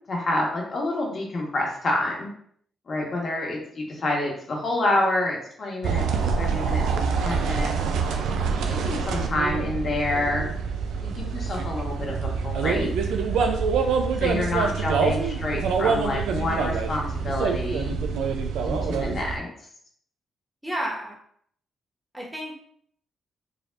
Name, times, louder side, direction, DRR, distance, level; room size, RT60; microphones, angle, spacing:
voice 1, 0.1-2.3 2.9-7.7 8.7-10.5 11.0-12.9 14.2-18.0 18.6-19.5, left 2 dB, 50° left, -1 dB, 1.3 m, -28 dB
sound 1, 5.8-19.4, right 5 dB, 85° right, 0.4 m, -26 dB
voice 2, 8.5-8.9 14.1-14.6 20.6-21.2 22.1-22.6, right 1 dB, 5° right, -2 dB, 1.3 m, -34 dB
4.9 x 2.6 x 2.5 m, 0.63 s
supercardioid pair, 65°, 0 cm